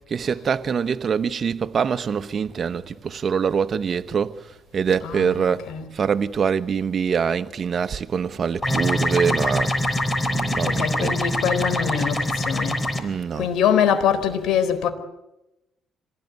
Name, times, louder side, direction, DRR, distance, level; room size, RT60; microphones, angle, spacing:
voice 1, 0.1-4.4 4.7-9.8 10.3-11.2 13.0-13.5, right 6 dB, 50° right, 1.2 m, -24 dB
voice 2, 5.0-5.9 10.7-13.0 13.3-14.9, left 8 dB, 85° left, 4.3 m, -24 dB
sound 1, 8.6-13.0, left 1 dB, 25° left, 3.8 m, -24 dB
26.5 x 18.5 x 9.5 m
cardioid pair, 90°, 0 cm